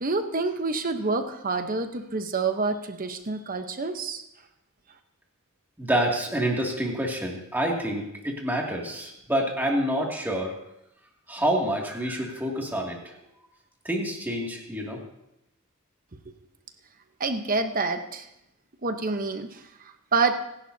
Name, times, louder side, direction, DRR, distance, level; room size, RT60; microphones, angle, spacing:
voice 1, 0.0-4.2 16.3-16.4 17.2-18.3 18.8-19.6 20.1-20.3, right 4 dB, 40° right, 7 dB, 1.0 m, -27 dB
voice 2, 5.8-10.5 11.3-13.2 13.8-15.0, right 1 dB, 10° right, -2 dB, 2.4 m, -27 dB
25.5 x 11.0 x 2.8 m, 0.85 s
head